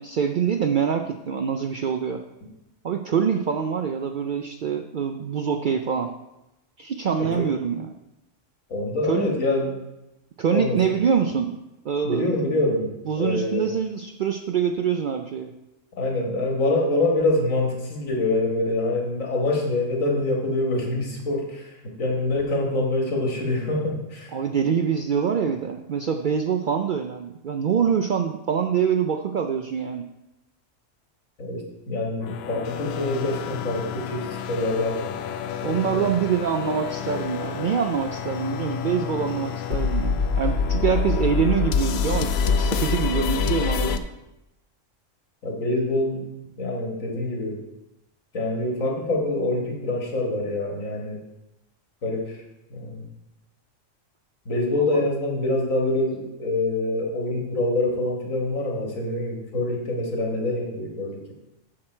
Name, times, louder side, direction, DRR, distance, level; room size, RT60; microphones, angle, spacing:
voice 1, 0.0-2.2 2.8-6.1 6.8-7.9 9.1-9.3 10.4-11.5 11.8-12.4 13.1-15.5 24.3-30.1 35.6-44.0 54.8-55.0, right 7 dB, 70° right, 5 dB, 0.4 m, -25 dB
voice 2, 8.7-9.7 10.5-10.8 12.0-12.9 13.2-13.7 16.0-21.7 22.0-24.4 31.4-36.1 45.4-46.2 46.6-47.6 48.3-51.2 52.0-52.4 52.7-53.1 54.5-61.3, left 2 dB, 90° left, 0 dB, 2.0 m, -25 dB
sound 1, 32.2-44.0, left 6 dB, 65° left, 0.7 m, -27 dB
7.5 x 6.6 x 4.4 m, 0.92 s
omnidirectional pair, 1.3 m